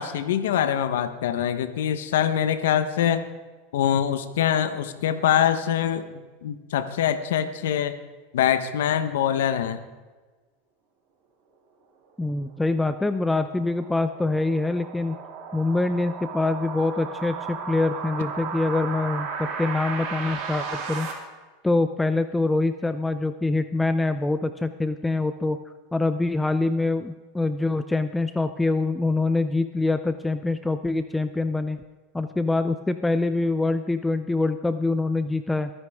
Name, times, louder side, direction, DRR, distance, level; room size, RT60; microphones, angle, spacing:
voice 1, 0.0-3.2 3.7-7.9 8.3-9.8, left 9 dB, 85° left, 10 dB, 1.0 m, -24 dB
voice 2, 12.2-15.2 15.5-21.1 21.6-25.6 25.9-31.8 32.1-35.7, left 2 dB, 10° left, 11 dB, 0.6 m, -25 dB
sound 1, 12.4-21.1, right 5 dB, 50° right, 3.7 m, -35 dB
23.0 x 10.5 x 3.6 m, 1.3 s
supercardioid pair, 120°, 0 cm